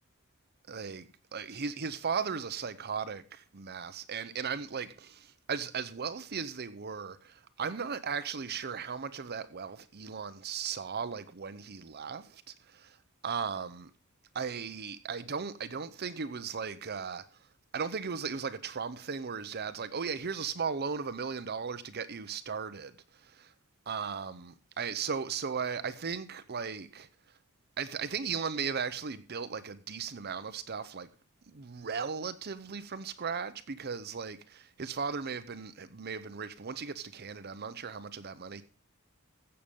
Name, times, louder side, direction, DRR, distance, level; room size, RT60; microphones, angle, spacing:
voice 1, 0.7-13.0 13.2-13.9 14.3-17.5 17.7-23.5 23.9-27.4 27.8-31.1 31.5-38.6, right 6 dB, 50° right, 0.7 m, -37 dB
15.5 x 6.8 x 5.3 m
head